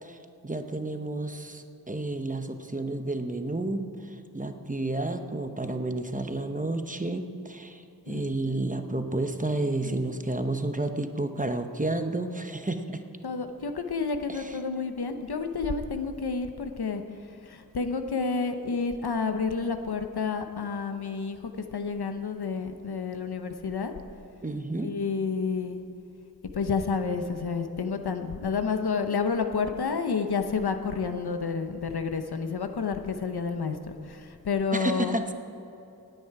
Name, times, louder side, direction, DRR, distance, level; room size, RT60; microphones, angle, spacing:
voice 1, 0.0-13.0 14.3-14.6 24.4-25.0 34.7-35.3, right 2 dB, 20° right, 6 dB, 0.9 m, -31 dB
voice 2, 8.1-8.6 8.9-9.0 9.8-10.1 13.2-17.0 17.4-21.4 21.7-23.9 24.8-25.8 26.5-35.2, left 5 dB, 90° left, 7 dB, 0.9 m, -30 dB
17.5 x 9.2 x 4.8 m, 2.8 s
wide cardioid pair, 55°, 37 cm